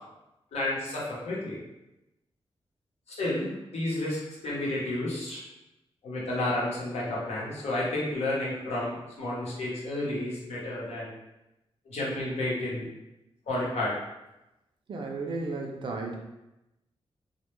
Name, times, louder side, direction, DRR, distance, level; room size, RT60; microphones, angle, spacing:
voice 1, 0.5-1.6 3.1-5.4 6.0-11.1 11.9-12.9 13.5-13.9, left 1 dB, 85° left, -6 dB, 0.8 m, -31 dB
voice 2, 14.9-16.2, right 3 dB, 50° right, 1 dB, 0.4 m, -34 dB
2.1 x 2.1 x 3.0 m, 0.94 s
wide cardioid pair, 130°, 11 cm